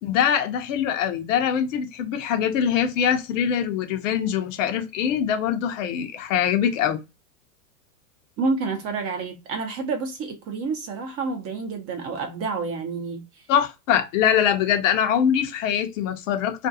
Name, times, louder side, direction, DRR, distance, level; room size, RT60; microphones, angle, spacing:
voice 1, 0.0-7.0 13.5-16.7, left 8 dB, 55° left, 0.7 m, -23 dB
voice 2, 8.4-13.2, right 4 dB, 30° right, 0.7 m, -29 dB
2.5 x 2.2 x 2.6 m
hypercardioid pair, 105°, 47 cm